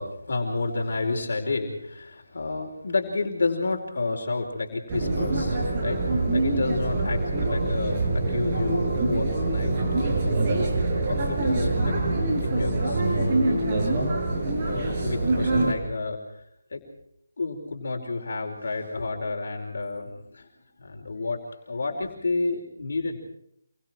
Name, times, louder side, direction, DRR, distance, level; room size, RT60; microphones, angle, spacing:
voice 1, 0.0-10.5 11.0-11.9 12.4-14.0 14.6-16.2 16.7-16.8 17.4-20.5 20.8-23.2, left 3 dB, 60° left, 2 dB, 4.9 m, -30 dB
sound 1, 4.9-15.7, right 2 dB, 30° right, 6.9 m, -25 dB
28.0 x 24.0 x 4.6 m, 0.78 s
figure-of-eight pair, 155°, 0 cm